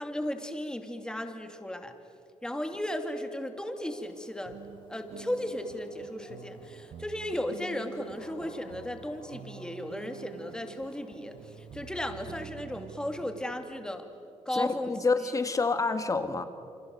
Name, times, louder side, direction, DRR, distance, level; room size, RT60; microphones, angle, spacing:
voice 1, 0.0-1.9 2.4-4.6 4.9-14.1 14.4-14.9, left 1 dB, 5° left, 6 dB, 2.8 m, -35 dB
Dog, 3.7-12.4, left 3 dB, 45° left, 4.7 m, -56 dB
sound 1, 4.5-13.9, right 9 dB, 65° right, 1.0 m, -48 dB
voice 2, 14.5-16.4, left 4 dB, 30° left, 9 dB, 1.8 m, -28 dB
28.5 x 25.5 x 8.0 m, 2.7 s
cardioid pair, 100°, 12 cm